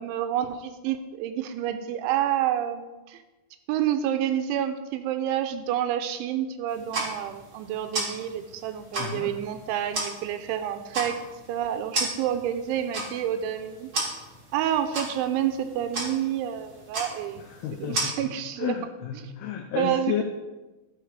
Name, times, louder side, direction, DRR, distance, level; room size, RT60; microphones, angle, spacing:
voice 1, 0.0-3.2 3.7-11.2 11.5-13.9 14.5-17.4 17.9-18.8 19.2-19.3 19.8-20.2, right 10 dB, 85° right, 8 dB, 3.0 m, -28 dB
sound 1, 6.7-18.0, right 2 dB, 35° right, 2.6 m, -35 dB
voice 2, 9.0-9.3 17.4-18.2 18.6-20.2, left 9 dB, 85° left, 4 dB, 2.2 m, -31 dB
16.0 x 5.8 x 4.7 m, 1.1 s
omnidirectional pair, 5.4 m